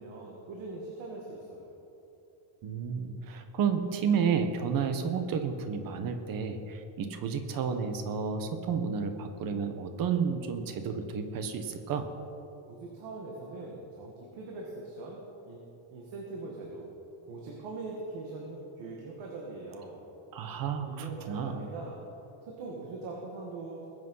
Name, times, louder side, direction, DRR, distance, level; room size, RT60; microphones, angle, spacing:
voice 1, 0.0-1.7 12.7-15.2 15.5-15.6 15.9-16.9 17.2-20.0 20.8-22.0 22.4-23.8, right 3 dB, 65° right, -2 dB, 2.3 m, -41 dB
voice 2, 2.6-12.1 20.3-21.6, right 6 dB, 45° right, 7 dB, 1.2 m, -31 dB
20.5 x 8.1 x 5.6 m, 2.9 s
cardioid pair, 170°, 49 cm